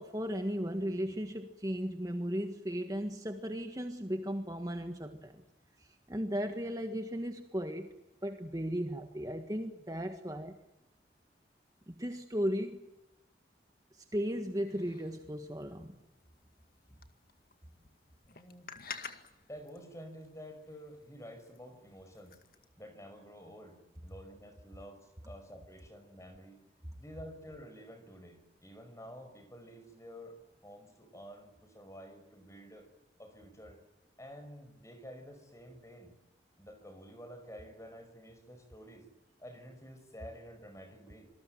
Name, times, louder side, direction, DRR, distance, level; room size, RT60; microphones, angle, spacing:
voice 1, 0.0-5.4 5.8-7.9 8.2-10.6 11.9-12.8 13.9-16.0, equal, 20° right, 6 dB, 1.6 m, -36 dB
sound 1, 14.2-22.7, left 5 dB, 55° left, 2.1 m, -52 dB
voice 2, 18.3-18.7 19.5-22.4 22.8-26.6 27.0-30.4 30.6-32.9 33.2-33.8 34.2-36.1 36.6-39.1 39.4-41.3, equal, 15° left, 8 dB, 5.4 m, -50 dB
27.0 x 20.0 x 9.3 m, 0.93 s
head